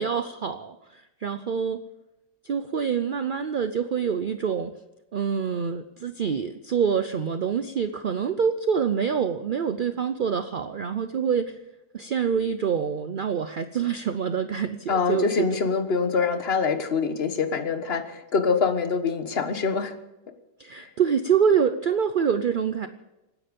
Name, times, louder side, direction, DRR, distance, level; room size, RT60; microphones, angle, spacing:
voice 1, 0.0-1.8 2.4-4.7 5.1-11.5 11.9-15.5 20.6-22.9, right 7 dB, 60° right, 10 dB, 0.5 m, -26 dB
voice 2, 14.9-20.0 20.8-20.9, left 5 dB, 40° left, 8 dB, 1.4 m, -25 dB
26.0 x 10.0 x 5.3 m, 0.98 s
omnidirectional pair, 1.7 m